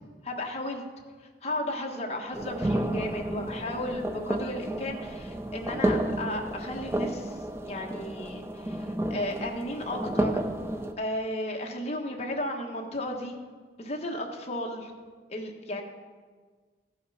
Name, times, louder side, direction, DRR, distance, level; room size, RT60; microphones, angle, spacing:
voice 1, 0.2-0.8 1.4-7.3 7.6-10.4 11.0-13.4 13.8-14.9 15.3-15.8, left 1 dB, 35° left, 1 dB, 1.4 m, -34 dB
sound 1, 2.3-10.9, right 1 dB, 15° right, 0.6 m, -31 dB
15.5 x 5.7 x 5.6 m, 1.5 s
head